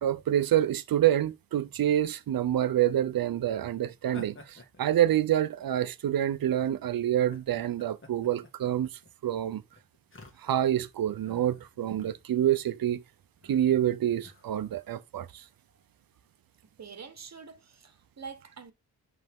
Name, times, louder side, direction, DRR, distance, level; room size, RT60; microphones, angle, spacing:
voice 1, 0.0-8.9 9.2-9.6 10.4-13.0 13.5-15.4, right 11 dB, 65° right, 0.7 m, -27 dB
sound 1, 4.0-5.8 6.5-6.7 7.2-10.8 11.2-12.2 12.5-12.8 13.4-13.8 14.2-14.9, left 2 dB, 30° left, 1.9 m, -51 dB
voice 2, 16.8-18.7, right 5 dB, 45° right, 1.3 m, -45 dB
10.5 x 3.5 x 3.6 m
cardioid pair, 70°, 38 cm